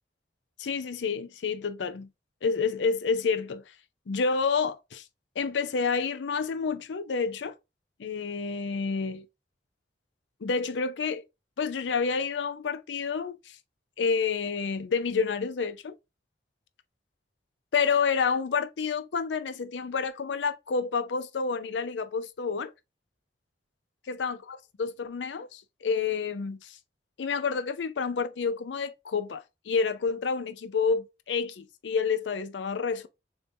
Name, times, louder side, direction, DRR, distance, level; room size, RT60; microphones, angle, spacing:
voice 1, 0.6-2.1 2.4-3.6 4.1-5.0 5.4-7.5 8.0-9.3 10.4-11.2 11.6-13.6 14.0-15.9 17.7-22.7 24.1-26.8 27.2-33.1, left 5 dB, 85° left, 0.5 m, -29 dB
6.8 x 2.7 x 2.6 m
head